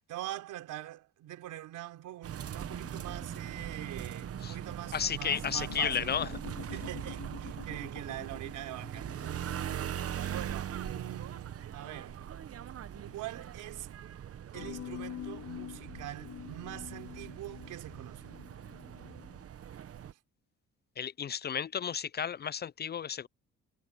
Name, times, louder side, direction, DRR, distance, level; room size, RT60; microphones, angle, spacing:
voice 1, 0.1-6.2 6.7-9.4 10.2-12.2 13.1-13.9 14.5-18.4, right 14 dB, 85° right, 4.2 m, -43 dB
sound 1, 2.2-20.1, right 10 dB, 50° right, 1.0 m, -41 dB
sound 2, 2.7-13.9 14.5-19.5, left 11 dB, 80° left, 3.3 m, -48 dB
voice 2, 4.9-6.3 21.0-23.3, left 8 dB, 35° left, 0.4 m, -33 dB
cardioid pair, 90°, 30 cm